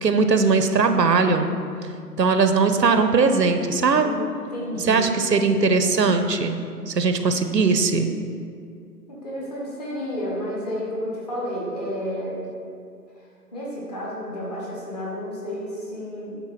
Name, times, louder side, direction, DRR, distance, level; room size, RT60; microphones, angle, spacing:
voice 1, 0.0-1.5 2.2-4.1 4.9-6.6 6.9-8.1, right 4 dB, 80° right, 8 dB, 0.8 m, -19 dB
voice 2, 3.9-5.0 9.1-12.4 13.5-16.3, equal, 25° left, -5 dB, 1.4 m, -31 dB
9.1 x 3.6 x 5.7 m, 2.3 s
figure-of-eight pair, 150°, 49 cm